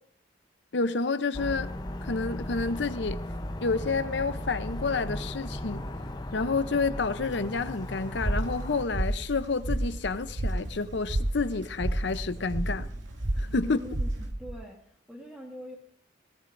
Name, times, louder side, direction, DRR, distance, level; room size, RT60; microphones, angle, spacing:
voice 1, 0.7-1.7 2.0-3.2 3.6-5.8 6.3-12.9 13.4-13.8, left 4 dB, 65° left, 0.7 m, -29 dB
sound 1, 1.3-8.9, left 1 dB, 20° left, 0.7 m, -36 dB
sound 2, 7.2-14.3, right 1 dB, 75° right, 2.3 m, -52 dB
sound 3, 8.2-14.6, right 1 dB, 45° right, 0.8 m, -31 dB
voice 2, 13.6-15.8, equal, 5° right, 1.4 m, -43 dB
17.5 x 17.0 x 2.6 m
head